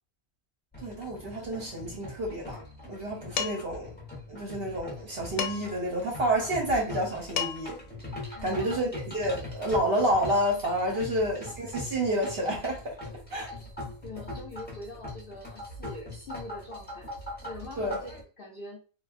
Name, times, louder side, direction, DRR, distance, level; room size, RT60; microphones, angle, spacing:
sound 1, 0.7-18.2, left 1 dB, 10° left, 0.6 m, -41 dB
voice 1, 0.8-3.9 4.3-7.8 8.4-13.0 13.3-13.5 17.8-18.0, right 1 dB, 50° right, 0.8 m, -29 dB
Dishes pots and pans, 3.4-3.8 5.4-5.9 7.0-7.1 7.4-7.8, left 8 dB, 85° left, 1.1 m, -32 dB
voice 2, 8.3-8.8 11.0-11.2 14.0-17.1 17.4-18.1 18.4-18.8, left 2 dB, 60° left, 0.5 m, -43 dB
3.2 x 2.2 x 2.4 m
omnidirectional pair, 1.6 m